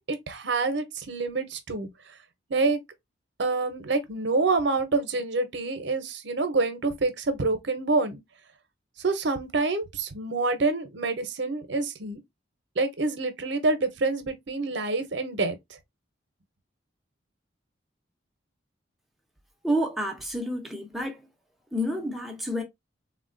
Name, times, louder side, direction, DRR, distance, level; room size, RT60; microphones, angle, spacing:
voice 1, 0.1-1.9 2.5-2.8 3.4-8.2 9.0-12.2 12.8-15.6, right 3 dB, 65° right, 0.6 m, -27 dB
voice 2, 19.6-21.3 21.7-22.6, equal, ahead, 0.5 m, -29 dB
3.5 x 2.1 x 2.5 m
head